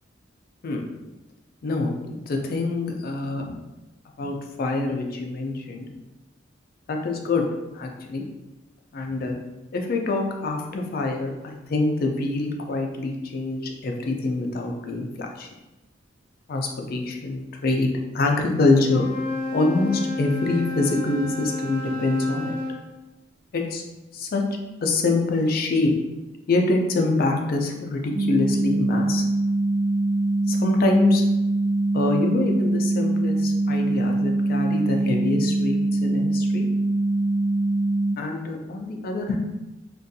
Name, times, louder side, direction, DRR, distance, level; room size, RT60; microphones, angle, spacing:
voice 1, 1.6-3.5 4.2-5.9 6.9-7.4 7.7-8.2 8.9-9.4 9.7-15.5 16.5-19.1 19.5-22.6 23.5-23.8 24.1-24.4 24.8-25.9 26.5-29.2 30.5-31.2 31.9-36.7 38.2-39.4, left 3 dB, 50° left, 2 dB, 0.4 m, -25 dB
Wind instrument woodwind instrument, 18.8-22.8, left 2 dB, 30° left, 0.8 m, -30 dB
sound 1, 28.1-38.1, right 2 dB, 45° right, 0.5 m, -23 dB
2.5 x 2.2 x 2.6 m, 1.0 s
head